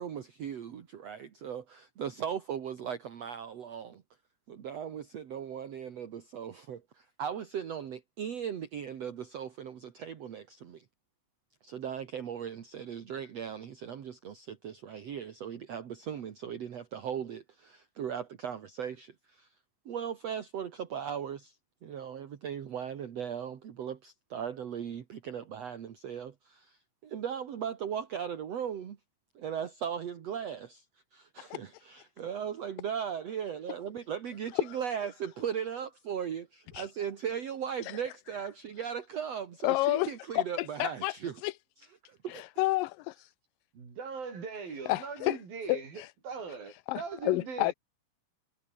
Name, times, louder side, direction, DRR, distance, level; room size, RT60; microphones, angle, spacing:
voice 1, 0.0-4.0 4.5-10.8 11.6-19.5 19.9-21.6 21.8-29.0 29.4-30.8 31.1-41.4 42.0-42.4, right 8 dB, 50° right, 2.6 m, -38 dB
voice 2, 39.6-40.1 40.3-41.1 41.4-41.5 42.3-43.3 44.9-45.4 45.7-46.1 46.9-47.7, left 19 dB, 80° left, 2.3 m, -30 dB
voice 3, 43.7-47.7, right 5 dB, 80° right, 7.3 m, -40 dB
omnidirectional pair, 4.1 m